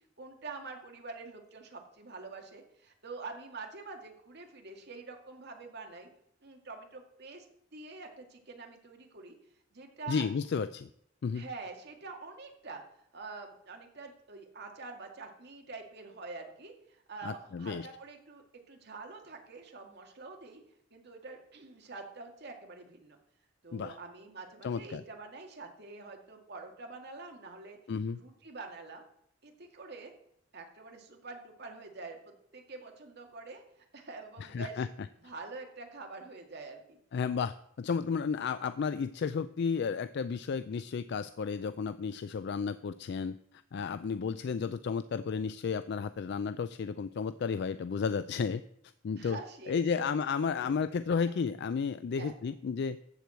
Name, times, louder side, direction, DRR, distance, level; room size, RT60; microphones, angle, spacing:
voice 1, 0.0-6.1 6.4-7.5 7.7-9.4 9.7-10.2 11.3-12.8 13.1-20.6 20.9-23.2 23.6-27.8 28.1-29.0 29.4-30.1 30.5-34.8 35.2-37.0 49.2-50.1 50.4-50.8 52.1-52.3, right 3 dB, 60° right, 3 dB, 2.1 m, -46 dB
voice 2, 10.1-10.9 11.2-11.4 17.2-17.9 23.7-24.0 24.6-25.0 27.9-28.2 34.4-34.9 37.1-43.4 43.7-48.6 49.0-49.4 49.7-53.0, left 5 dB, 60° left, 12 dB, 0.4 m, -32 dB
13.5 x 4.7 x 7.9 m, 0.72 s
head